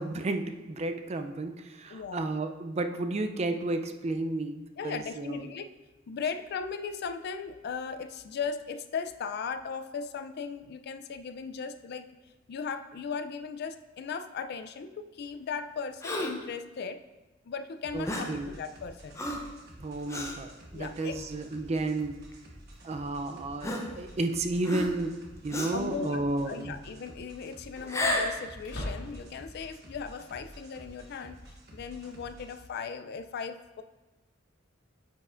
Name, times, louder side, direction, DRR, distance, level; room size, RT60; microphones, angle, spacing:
voice 1, 0.0-5.4 17.9-18.5 19.8-22.2 22.8-26.8, right 2 dB, 35° right, 7 dB, 0.4 m, -32 dB
voice 2, 1.9-2.3 4.8-5.7 6.1-12.1 12.5-17.0 17.4-19.2 20.7-21.2 25.7-31.4 31.7-33.8, left 5 dB, 55° left, 9 dB, 0.4 m, -37 dB
Gasp, 16.0-16.5 18.0-18.4 19.2-19.5 20.1-20.4 21.1-21.2 22.3-22.4 23.6-24.3 24.6-25.1 25.5-25.9 27.8-28.4, left 1 dB, 15° left, 0.6 m, -32 dB
sound 1, 17.8-32.6, right 1 dB, 55° right, 1.2 m, -51 dB
sound 2, 28.6-29.5, left 1 dB, 85° left, 1.9 m, -39 dB
9.2 x 5.4 x 2.5 m, 1.1 s
head